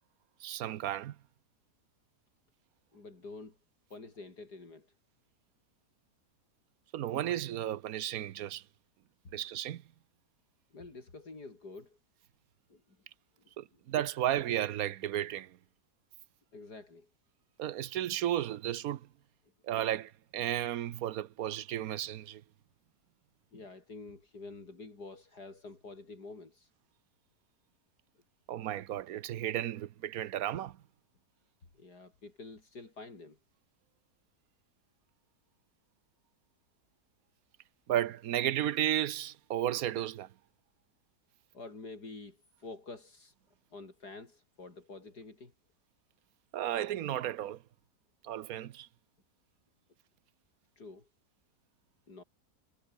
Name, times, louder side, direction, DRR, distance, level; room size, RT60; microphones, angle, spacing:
voice 1, 0.4-1.2 6.9-8.6 9.3-9.8 13.6-15.6 17.6-19.1 19.6-22.4 28.5-30.8 37.9-40.3 46.5-47.6 48.2-48.9, right 12 dB, 70° right, 1.1 m, -33 dB
voice 2, 2.9-3.6 3.9-4.9 9.2-9.3 10.7-12.0 12.7-13.0 13.4-13.5 16.5-17.1 23.5-26.7 31.7-33.4 41.5-43.3 43.7-45.5 50.8-51.1 52.1-52.2, left 3 dB, 80° left, 4.9 m, -48 dB
omnidirectional pair, 1.7 m